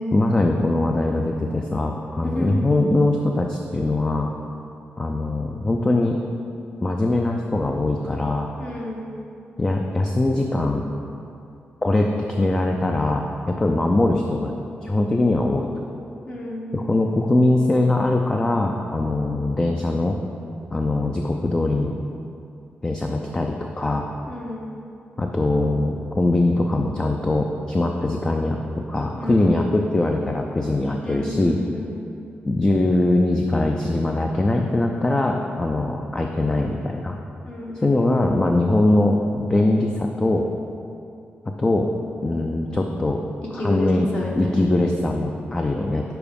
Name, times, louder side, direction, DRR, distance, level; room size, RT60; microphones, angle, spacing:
voice 1, 0.1-4.3 5.0-6.2 6.8-8.5 9.6-10.8 11.8-14.5 14.8-15.7 16.7-20.2 20.7-22.0 22.8-24.1 25.2-28.6 28.9-31.6 32.4-37.2 37.8-40.5 41.6-41.9 42.2-43.2 43.5-44.1 44.4-46.0, left 2 dB, 20° left, 2 dB, 0.4 m, -21 dB
voice 2, 2.2-2.6 8.6-9.1 16.3-16.9 24.3-24.7 29.1-29.8 31.0-32.1 37.4-38.3 43.5-44.6, left 1 dB, 45° left, -4 dB, 1.2 m, -31 dB
7.0 x 4.8 x 5.2 m, 2.7 s
cardioid pair, 110°, 4 cm